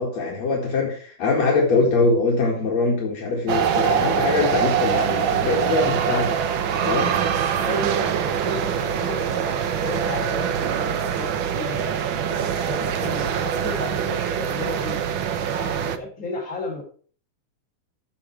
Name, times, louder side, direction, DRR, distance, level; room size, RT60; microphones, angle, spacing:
voice 1, 0.0-6.4 6.7-7.1, left 3 dB, 65° left, -1 dB, 3.1 m, -22 dB
sound 1, 3.5-16.0, right 8 dB, 65° right, 1.2 m, -24 dB
voice 2, 7.6-15.0 15.6-16.8, left 2 dB, 25° left, 0 dB, 4.5 m, -34 dB
15.0 x 7.2 x 4.6 m, 0.43 s
omnidirectional pair, 3.4 m